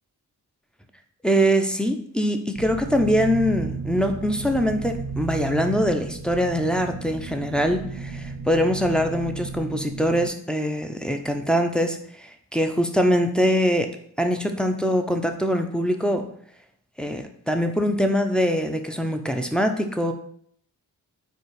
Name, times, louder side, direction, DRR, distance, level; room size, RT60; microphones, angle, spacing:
voice 1, 1.2-13.9 14.2-16.2 17.0-20.1, equal, ahead, 4 dB, 0.6 m, -23 dB
sound 1, 2.5-10.3, right 4 dB, 75° right, 0.8 m, -34 dB
4.4 x 2.4 x 4.6 m, 0.62 s
supercardioid pair, 45°, 40 cm